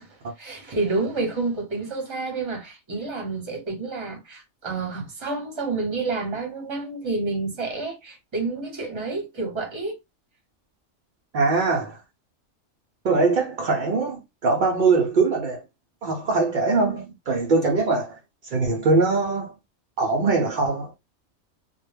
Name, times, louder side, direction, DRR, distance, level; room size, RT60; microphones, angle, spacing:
voice 1, 0.0-10.0, right 3 dB, 25° right, 0.7 m, -29 dB
voice 2, 11.3-12.0 13.0-15.6 16.0-19.5 20.0-20.9, right 3 dB, 65° right, 0.5 m, -22 dB
2.1 x 2.1 x 3.2 m
omnidirectional pair, 1.3 m